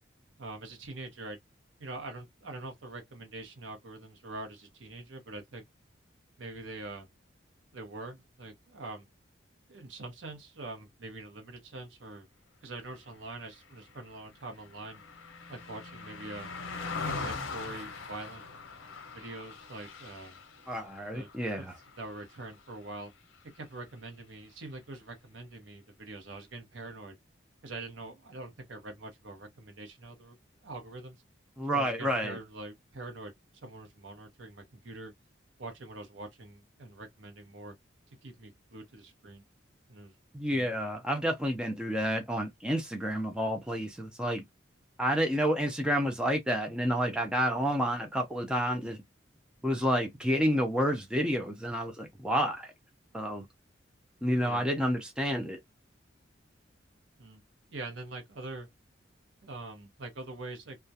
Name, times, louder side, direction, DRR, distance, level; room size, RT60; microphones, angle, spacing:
voice 1, 0.4-1.4 1.8-5.6 6.4-7.1 7.7-9.1 9.7-12.3 12.6-15.0 15.5-16.5 17.1-18.4 19.1-20.4 21.1-21.3 21.6-21.7 22.0-23.1 23.5-27.1 27.6-30.4 30.6-31.2 31.7-33.3 33.6-35.1 35.6-37.7 38.2-39.4 39.9-40.1 40.5-40.7 54.4-54.7 57.2-57.4 57.7-58.7 59.4-60.8, right 2 dB, 75° right, 0.8 m, -44 dB
Car passing by, 13.4-22.9 23.3-23.5, left 4 dB, 90° left, 0.7 m, -42 dB
voice 2, 20.7-21.7 31.6-32.4 40.3-44.4 45.0-49.0 49.6-52.7 53.1-53.4 54.2-55.6, equal, 5° right, 0.3 m, -29 dB
2.3 x 2.1 x 2.6 m
head